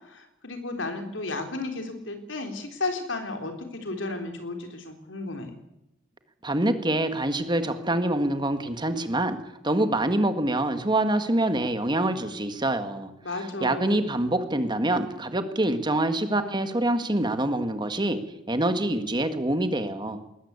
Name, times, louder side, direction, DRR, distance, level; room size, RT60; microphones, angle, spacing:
voice 1, 0.1-5.5 13.2-14.1, left 2 dB, 85° left, 5 dB, 4.0 m, -33 dB
voice 2, 6.4-9.4 9.6-13.1 13.6-18.2 18.5-20.2, right 1 dB, 25° right, 8 dB, 1.9 m, -25 dB
21.0 x 19.5 x 8.4 m, 0.87 s
head